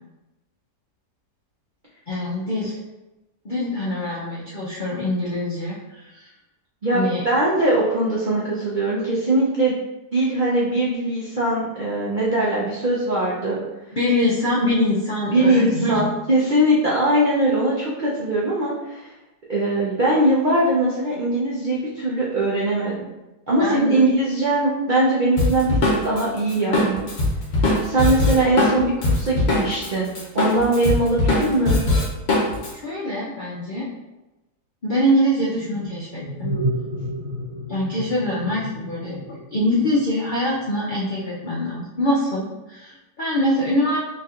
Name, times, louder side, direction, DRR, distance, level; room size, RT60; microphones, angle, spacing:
voice 1, 2.1-2.8 3.4-6.3 6.9-7.3 13.9-16.1 23.6-24.0 32.7-33.9 34.8-36.5 37.7-39.2 39.5-44.0, left 1 dB, 65° left, -7 dB, 0.5 m, -24 dB
voice 2, 6.8-9.8 10.1-13.6 15.3-19.1 19.5-23.0 23.5-27.1 27.8-31.8, right 1 dB, 65° right, -7 dB, 0.4 m, -21 dB
Drum kit, 25.4-29.9 30.1-32.7, left 2 dB, 45° left, 1.0 m, -20 dB
sound 1, 35.4-40.7, equal, 50° right, 1.7 m, -31 dB
4.2 x 3.2 x 2.4 m, 1.0 s
omnidirectional pair, 1.8 m